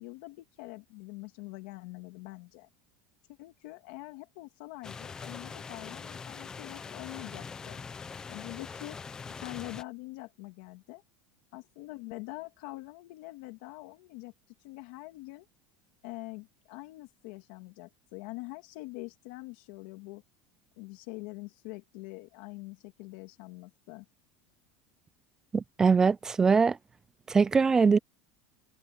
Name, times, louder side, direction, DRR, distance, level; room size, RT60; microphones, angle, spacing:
voice 1, 0.0-2.7 3.4-7.8 8.3-9.0 9.3-11.0 11.5-14.3 14.6-15.5 16.0-20.2 20.8-24.0, left 22 dB, 60° left, 2.2 m, -44 dB
sound 1, 4.8-9.8, left 5 dB, 15° left, 1.0 m, -43 dB
voice 2, 25.5-26.8 27.3-28.0, right 5 dB, 10° right, 0.4 m, -22 dB
cardioid pair, 170°, 5 cm